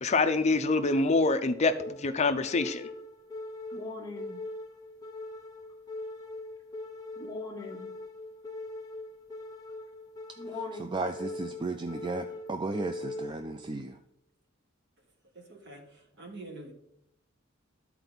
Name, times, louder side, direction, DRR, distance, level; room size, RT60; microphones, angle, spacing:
voice 1, 0.0-2.9, left 3 dB, 35° left, 0.5 m, -26 dB
sound 1, 0.7-13.7, left 2 dB, 20° left, 1.0 m, -41 dB
voice 2, 10.5-14.0, right 3 dB, 25° right, 0.4 m, -35 dB
voice 3, 15.3-16.7, right 2 dB, 55° right, 1.7 m, -46 dB
12.5 x 4.5 x 4.0 m
head